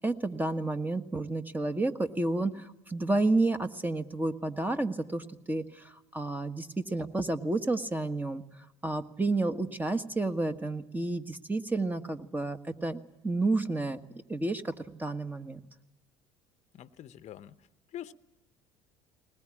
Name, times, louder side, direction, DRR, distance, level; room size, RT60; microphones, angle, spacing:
voice 1, 0.0-8.4 8.8-14.0 14.3-15.6, right 2 dB, 10° right, 8 dB, 1.5 m, -30 dB
voice 2, 16.7-17.6 17.9-18.1, left 11 dB, 50° left, 13 dB, 0.9 m, -44 dB
20.5 x 19.5 x 9.9 m, 0.91 s
hypercardioid pair, 70°, 15 cm